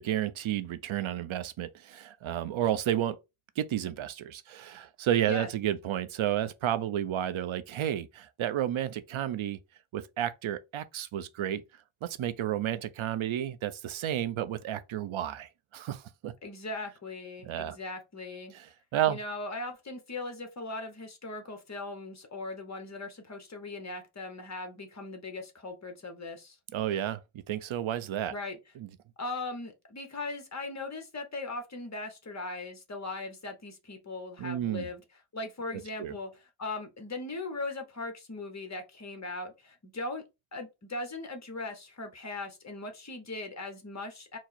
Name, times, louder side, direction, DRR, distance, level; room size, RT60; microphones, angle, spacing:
voice 1, 0.0-3.2 3.6-9.6 9.9-11.6 12.0-16.3 17.4-17.8 18.5-18.7 18.9-19.2 26.7-27.2 27.5-28.3 28.8-28.9 34.4-34.8 36.0-36.2, right 11 dB, 70° right, 0.6 m, -31 dB
voice 2, 16.4-18.6 19.1-26.6 28.3-28.6 29.2-35.0 35.3-40.2 40.5-44.4, left 2 dB, 35° left, 0.9 m, -39 dB
4.5 x 2.0 x 4.0 m
wide cardioid pair, 150°, 50 cm